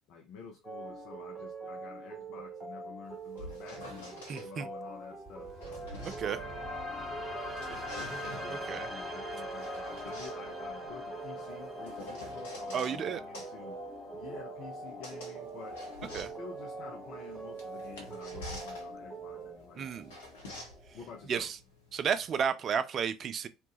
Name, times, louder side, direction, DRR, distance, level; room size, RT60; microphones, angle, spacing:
voice 1, 0.1-5.9 8.4-13.8 14.1-15.8 16.3-20.1 20.9-21.5, left 5 dB, 55° left, 0.5 m, -49 dB
sound 1, 0.6-19.6, right 4 dB, 25° right, 0.9 m, -44 dB
sound 2, 3.1-4.5 5.3-7.1 7.4-8.6 9.3-13.0 13.3-22.4, left 1 dB, 75° left, 0.9 m, -48 dB
voice 2, 4.3-4.7 6.2-6.4 8.5-8.9 12.7-13.2 16.1-16.3 19.8-20.1 21.3-21.6 21.9-23.5, right 7 dB, 40° right, 0.3 m, -32 dB
sound 3, 5.3-21.3, left 2 dB, 5° right, 1.3 m, -44 dB
2.9 x 2.1 x 3.0 m
figure-of-eight pair, 60°, 0 cm